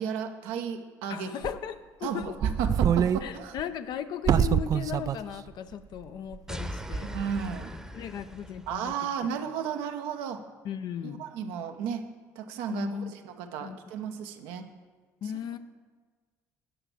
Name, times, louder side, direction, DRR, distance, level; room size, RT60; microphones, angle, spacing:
voice 1, 0.0-1.3 2.0-3.6 7.0-7.7 8.7-10.4 11.0-12.0 12.4-14.7, right 7 dB, 75° right, 6 dB, 0.9 m, -34 dB
voice 2, 1.1-1.7 2.0-2.5 3.2-7.1 7.9-9.3 10.6-11.2 12.7-13.1 13.6-13.8 15.2-15.6, left 9 dB, 60° left, 10 dB, 0.6 m, -36 dB
sound 1, 1.4-1.6 2.2-3.2 3.6-3.7 4.2-5.2 5.5-5.6 6.3-6.6 6.9-7.2, right 8 dB, 45° right, 0.4 m, -25 dB
sound 2, 6.5-9.0, equal, 5° right, 0.9 m, -39 dB
8.8 x 5.9 x 6.8 m, 1.5 s
hypercardioid pair, 60°, 8 cm